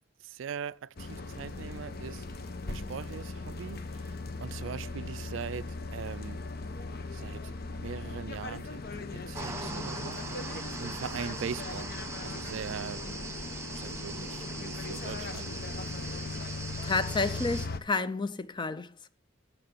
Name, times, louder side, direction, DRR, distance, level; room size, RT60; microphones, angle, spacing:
voice 1, 0.2-2.4 2.7-4.1 4.4-6.4 7.1-8.8 9.1-10.2 10.8-11.9 12.2-15.5, right 7 dB, 70° right, 0.4 m, -41 dB
sound 1, 1.0-17.8, left 3 dB, 50° left, 0.8 m, -39 dB
sound 2, 9.3-17.7, right 3 dB, 15° right, 1.3 m, -41 dB
voice 2, 16.8-19.1, left 3 dB, 25° left, 0.5 m, -30 dB
9.1 x 6.7 x 5.6 m
head